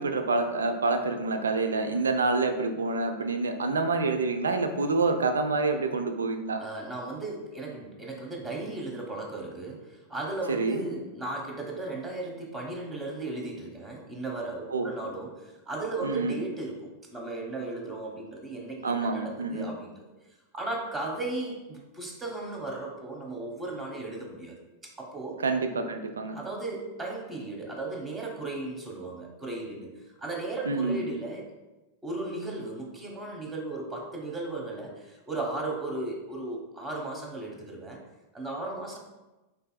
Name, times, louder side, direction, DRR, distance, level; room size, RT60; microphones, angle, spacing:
voice 1, 0.0-6.6 10.5-10.9 14.7-14.9 16.0-16.4 18.8-19.7 25.4-26.4 30.7-31.0, right 3 dB, 70° right, 7 dB, 0.4 m, -27 dB
voice 2, 6.6-20.0 20.5-24.6 24.8-25.3 26.3-29.9 30.2-31.5 32.0-38.0 38.3-39.0, right 2 dB, 15° right, 0 dB, 1.1 m, -36 dB
5.3 x 4.2 x 2.3 m, 1.1 s
figure-of-eight pair, 90°, 0 cm